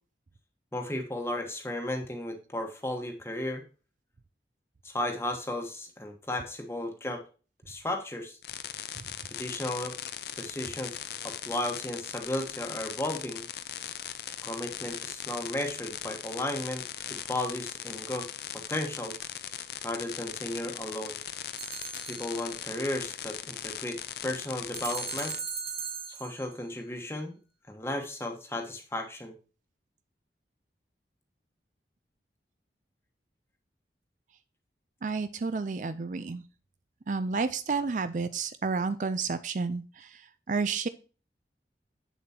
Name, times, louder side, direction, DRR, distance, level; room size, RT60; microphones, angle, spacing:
voice 1, 0.7-3.6 4.8-7.2 7.7-8.4 9.3-10.0 10.3-13.4 14.4-18.3 18.5-19.1 19.8-21.2 22.1-25.4 26.1-27.3 27.7-29.3, left 1 dB, 15° left, 3 dB, 1.3 m, -34 dB
sound 1, 8.4-25.4, left 10 dB, 65° left, 0.6 m, -39 dB
sound 2, 21.6-22.6 24.7-26.5, right 5 dB, 30° right, 1.5 m, -38 dB
voice 2, 35.0-36.4 37.1-40.2 40.5-40.9, right 4 dB, 45° right, 12 dB, 0.4 m, -31 dB
7.8 x 7.0 x 2.8 m, 0.35 s
head